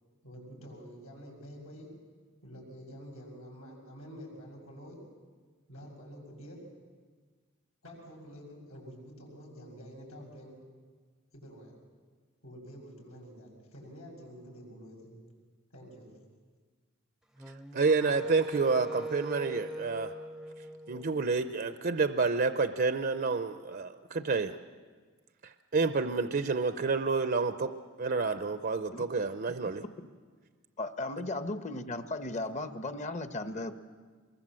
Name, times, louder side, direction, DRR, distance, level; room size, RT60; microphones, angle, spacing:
voice 1, 0.2-1.9 2.4-5.0 5.7-6.6 7.8-10.5 11.3-11.8 12.4-15.2 15.7-16.1, equal, 85° left, -1 dB, 7.0 m, -48 dB
Wind instrument woodwind instrument, 17.4-21.6, right 1 dB, 5° right, 0.6 m, -41 dB
voice 2, 17.5-20.1 20.9-24.6 25.4-27.7 28.0-29.8, right 4 dB, 45° right, 10 dB, 0.6 m, -29 dB
voice 3, 30.8-33.7, left 2 dB, 35° left, 10 dB, 1.0 m, -36 dB
24.5 x 22.0 x 7.5 m, 1.5 s
head